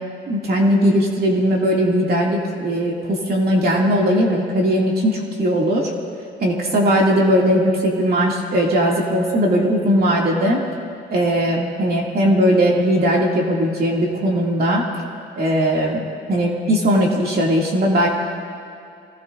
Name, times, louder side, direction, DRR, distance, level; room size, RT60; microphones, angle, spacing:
voice 1, 0.3-5.9 6.4-10.6 11.1-14.8 15.4-18.1, equal, 50° right, -2 dB, 2.5 m, -18 dB
25.0 x 18.5 x 2.6 m, 2.5 s
cardioid pair, 90°, 20 cm